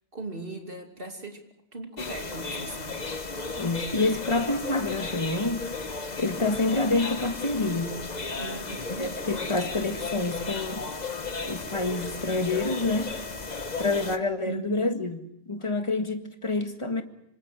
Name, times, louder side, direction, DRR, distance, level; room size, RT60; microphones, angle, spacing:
voice 1, 0.1-1.4 1.7-3.0 8.4-9.1 14.4-15.1, right 3 dB, 65° right, 3.0 m, -38 dB
sound 1, 2.0-14.2, left 3 dB, 45° left, 1.3 m, -34 dB
voice 2, 3.6-5.6 6.2-8.0 9.0-10.8 11.4-13.1 13.8-15.2 15.5-17.0, left 2 dB, 30° left, 1.8 m, -27 dB
27.0 x 25.5 x 6.2 m
omnidirectional pair, 1.0 m